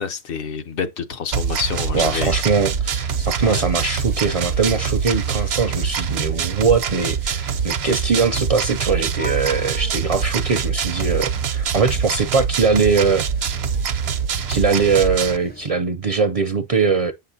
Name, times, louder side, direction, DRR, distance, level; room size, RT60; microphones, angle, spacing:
voice 1, 0.0-2.4 3.4-3.6, left 6 dB, 65° left, 0.9 m, -27 dB
sound 1, 1.3-15.4, right 7 dB, 85° right, 0.9 m, -24 dB
voice 2, 1.9-13.5 14.5-17.1, right 5 dB, 50° right, 0.5 m, -21 dB
sound 2, 2.0-15.7, left 1 dB, 15° left, 0.4 m, -43 dB
8.5 x 5.7 x 2.7 m
omnidirectional pair, 1.0 m